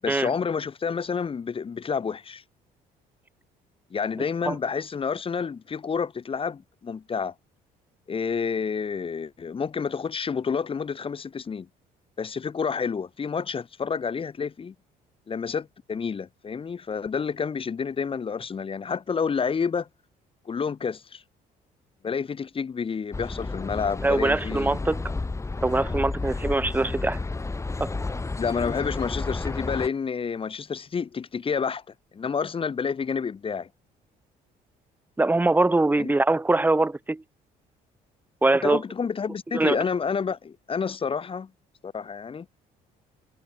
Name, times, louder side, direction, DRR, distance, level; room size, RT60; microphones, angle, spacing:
voice 1, 0.0-2.4 3.9-7.3 8.1-11.7 12.2-14.7 15.3-19.9 20.5-21.2 22.0-24.8 28.4-31.8 32.1-33.7 36.0-36.1 38.6-41.5 41.8-42.5, left 6 dB, 30° left, 2.6 m, -29 dB
sound 1, 23.1-29.9, left 3 dB, 15° left, 3.1 m, -31 dB
voice 2, 24.0-25.0 25.6-27.2 27.8-27.9 35.2-37.2 38.4-38.8 39.5-39.8, right 2 dB, 10° right, 1.4 m, -23 dB
cardioid pair, 110°, 17 cm